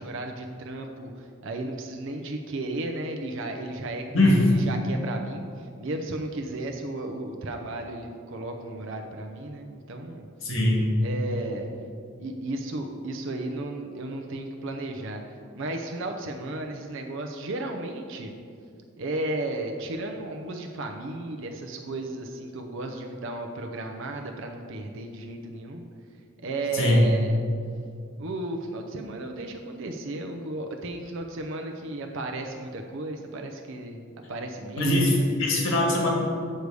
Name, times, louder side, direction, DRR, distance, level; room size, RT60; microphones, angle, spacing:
voice 1, 0.0-10.3 11.0-11.7 12.2-18.3 19.0-25.8 26.4-27.4 28.2-34.0 34.3-35.4, right 2 dB, 60° right, 3 dB, 0.6 m, -34 dB
voice 2, 4.1-4.5 10.4-10.9 26.7-27.1 34.8-36.1, left 1 dB, 65° left, -1 dB, 1.7 m, -21 dB
6.7 x 6.6 x 4.8 m, 2.3 s
head